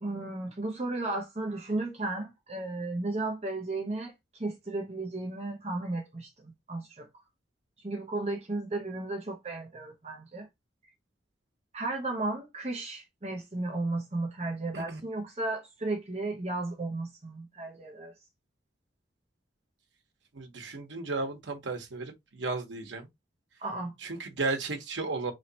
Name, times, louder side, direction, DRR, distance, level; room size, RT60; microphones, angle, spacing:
voice 1, 0.0-7.1 7.8-10.5 11.7-18.1 23.6-23.9, right 2 dB, 35° right, 0.7 m, -34 dB
voice 2, 20.3-23.1 24.0-25.3, right 3 dB, 85° right, 1.0 m, -34 dB
3.1 x 2.8 x 4.0 m
head